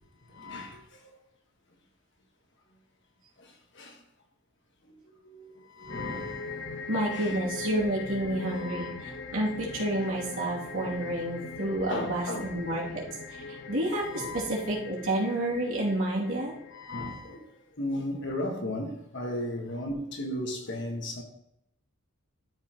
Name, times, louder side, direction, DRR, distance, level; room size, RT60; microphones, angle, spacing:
voice 1, 0.3-1.0 3.4-4.0 4.8-6.8 7.1-7.4 8.4-9.1 11.9-12.5 12.8-12.9 14.1-14.6 16.7-17.5 17.8-21.2, left 1 dB, 55° left, 1.6 m, -36 dB
sound 1, 5.9-17.4, left 4 dB, 70° left, 1.5 m, -40 dB
voice 2, 6.9-8.9 9.3-13.0 13.7-14.2 14.5-16.5, right 1 dB, 70° right, 2.7 m, -29 dB
12.5 x 5.6 x 3.0 m
head